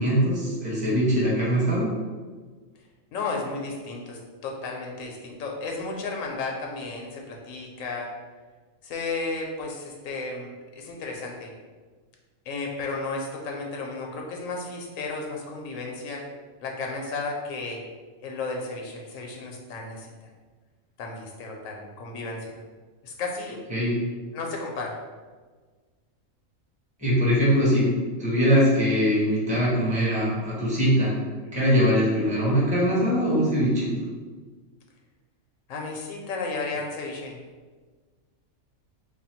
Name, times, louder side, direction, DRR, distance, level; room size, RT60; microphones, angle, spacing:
voice 1, 0.0-1.9 23.7-24.0 27.0-27.9 28.2-31.1 31.5-33.9, equal, 5° right, -7 dB, 1.0 m, -22 dB
voice 2, 3.1-8.1 8.8-10.5 10.8-11.5 12.5-16.2 16.6-17.8 18.2-20.1 21.0-22.6 23.0-23.6 24.3-24.9 35.7-37.4, left 3 dB, 85° left, 0 dB, 1.0 m, -33 dB
3.4 x 2.2 x 4.3 m, 1.4 s
omnidirectional pair, 1.4 m